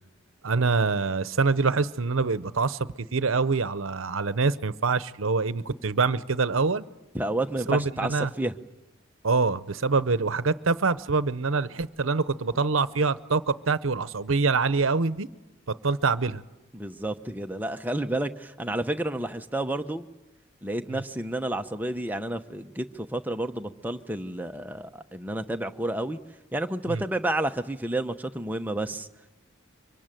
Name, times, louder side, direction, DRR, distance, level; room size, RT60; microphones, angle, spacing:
voice 1, 0.4-2.8 3.1-6.8 7.7-8.3 9.2-15.3 15.7-16.4 20.9-21.0 26.9-27.0, right 4 dB, 80° right, 0.8 m, -25 dB
voice 2, 7.1-8.5 16.7-20.1 20.6-26.2 26.5-29.1, right 1 dB, 10° right, 0.9 m, -30 dB
24.5 x 24.0 x 9.1 m
head